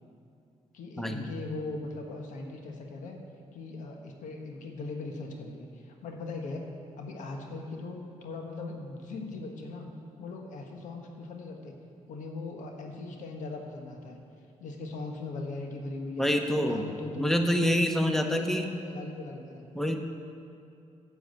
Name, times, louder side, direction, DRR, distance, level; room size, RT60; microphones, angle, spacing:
voice 1, 0.7-3.2 3.5-9.9 10.2-11.7 12.1-14.2 14.6-16.3 16.6-19.6, left 3 dB, 80° left, 2 dB, 1.3 m, -40 dB
voice 2, 16.2-16.8 17.2-18.7 19.7-20.0, equal, 5° left, 4 dB, 1.1 m, -26 dB
9.1 x 7.4 x 8.1 m, 2.6 s
cardioid pair, 60°, 13 cm